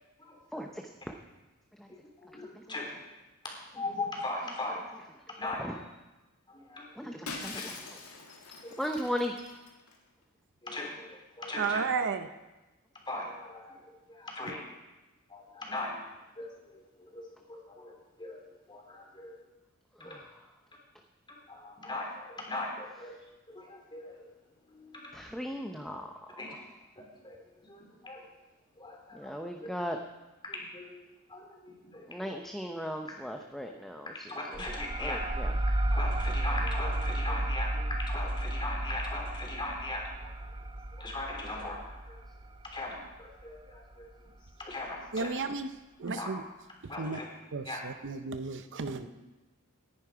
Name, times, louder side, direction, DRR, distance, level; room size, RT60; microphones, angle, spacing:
voice 1, 0.2-0.7 1.9-2.0 2.3-2.9 3.7-4.8 5.4-5.8 6.5-6.9 8.6-8.9 10.6-11.8 13.1-13.8 14.1-14.7 15.3-16.1 16.4-19.4 20.0-20.3 21.3-23.1 23.5-24.2 24.6-25.1 26.4-26.5 26.9-27.4 27.7-28.2 28.8-29.7 30.4-31.0 31.3-32.4 34.3-35.2 35.9-40.3 40.9-42.2 42.7-44.1 44.6-45.4 46.1-46.3 46.9-47.2 47.6-47.8, left 2 dB, 20° left, -1 dB, 3.5 m, -39 dB
voice 2, 7.0-7.5 8.8-9.3 25.1-26.1 29.1-30.0 32.1-34.1 35.0-35.5, equal, ahead, 3 dB, 0.8 m, -36 dB
Shatter, 7.3-9.9, left 4 dB, 75° left, 2.2 m, -43 dB
voice 3, 11.6-12.3 45.1-45.7 46.0-46.4 47.0-47.2 47.5-49.1, right 4 dB, 55° right, 10 dB, 0.7 m, -33 dB
sound 1, 34.5-43.8, right 1 dB, 20° right, 0.5 m, -33 dB
19.0 x 10.5 x 5.0 m, 1.1 s
head